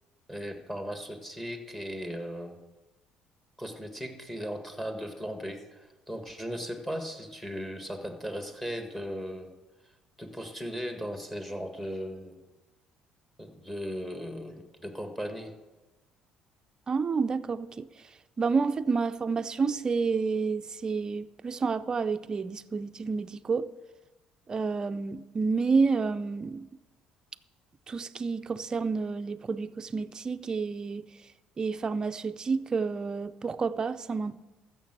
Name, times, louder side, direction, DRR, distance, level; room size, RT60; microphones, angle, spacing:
voice 1, 0.3-2.6 3.6-9.5 10.2-12.4 13.4-15.5, equal, 5° left, 1.7 m, -37 dB
voice 2, 16.9-23.7 24.5-26.7 27.9-31.1 31.6-34.4, right 4 dB, 30° right, 0.5 m, -29 dB
14.5 x 6.6 x 6.1 m
cardioid pair, 100°, 2 cm